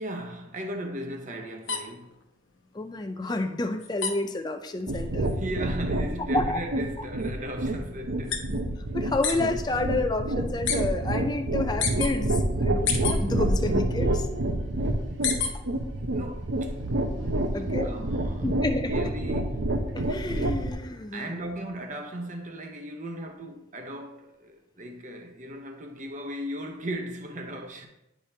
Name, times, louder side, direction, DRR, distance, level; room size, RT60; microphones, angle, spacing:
voice 1, 0.0-2.2 5.3-8.6 15.6-16.7 17.5-18.6 18.9-19.6 21.1-27.9, equal, 40° right, 0.8 m, -37 dB
sound 1, 1.6-9.5 9.8-10.8 11.1-12.1 12.6-13.7 14.1-15.8 16.1-17.4, left 6 dB, 70° left, 0.9 m, -32 dB
voice 2, 2.7-5.3 6.3-6.6 8.9-14.3 17.5-17.9 18.4-19.1 19.9-21.3, left 2 dB, 20° left, 0.4 m, -30 dB
sound 2, 4.9-20.7, right 1 dB, 65° right, 0.8 m, -28 dB
10.0 x 5.0 x 2.8 m
head